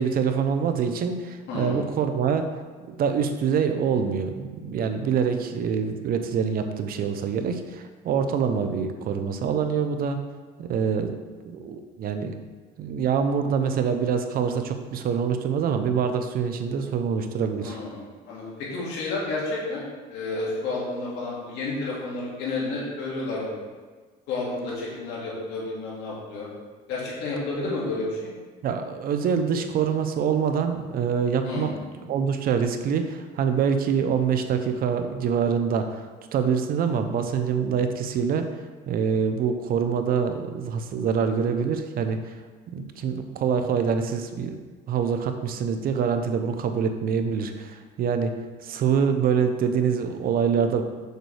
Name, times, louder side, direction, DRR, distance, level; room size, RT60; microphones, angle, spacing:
voice 1, 0.0-2.5 2.9-10.2 10.6-11.1 11.5-12.4 12.8-17.8 28.6-31.7 32.0-38.5 38.9-42.4 42.7-44.6 44.9-48.3 48.6-50.8, right 6 dB, 60° right, 7 dB, 0.7 m, -25 dB
voice 2, 1.5-1.8 17.6-19.8 20.1-23.6 24.3-26.5 26.9-28.3 31.4-31.8, left 3 dB, 85° left, -5 dB, 2.1 m, -31 dB
6.6 x 6.2 x 3.3 m, 1.4 s
cardioid pair, 110°, 17 cm